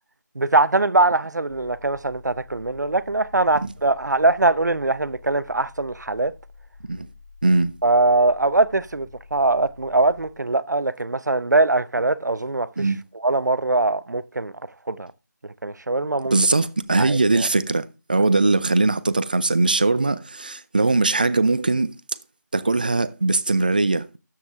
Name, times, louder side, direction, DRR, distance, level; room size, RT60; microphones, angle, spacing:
voice 1, 0.4-6.3 7.8-12.9 13.2-14.5 14.9-15.1 15.6-16.3 17.0-17.5, right 2 dB, 65° right, 0.7 m, -21 dB
sound 1, 1.5-10.3, left 4 dB, 10° left, 0.8 m, -48 dB
voice 2, 16.3-21.9 22.5-24.1, right 3 dB, 25° right, 0.5 m, -20 dB
13.0 x 7.3 x 3.5 m
figure-of-eight pair, 170°, 10 cm